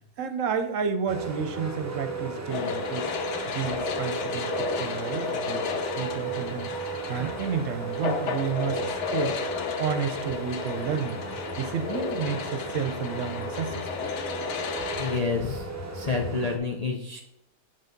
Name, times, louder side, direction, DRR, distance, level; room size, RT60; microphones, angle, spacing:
voice 1, 0.2-3.1 3.5-5.6 5.9-9.4 9.8-14.1, right 6 dB, 65° right, 9 dB, 1.0 m, -31 dB
sound 1, 1.1-16.6, right 4 dB, 20° right, 0.4 m, -36 dB
sound 2, 2.5-15.2, left 6 dB, 60° left, 0.9 m, -33 dB
voice 2, 15.0-15.7 15.9-17.2, left 4 dB, 45° left, 0 dB, 0.5 m, -28 dB
8.0 x 3.7 x 5.2 m, 0.77 s
omnidirectional pair, 1.5 m